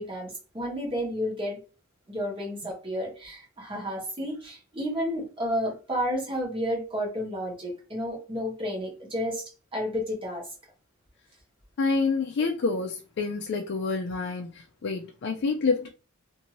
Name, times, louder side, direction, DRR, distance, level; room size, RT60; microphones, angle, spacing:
voice 1, 0.0-1.6 2.1-10.4, equal, 25° right, 1.2 m, -31 dB
voice 2, 11.8-15.9, left 4 dB, 55° left, 0.4 m, -28 dB
2.6 x 2.6 x 3.0 m
head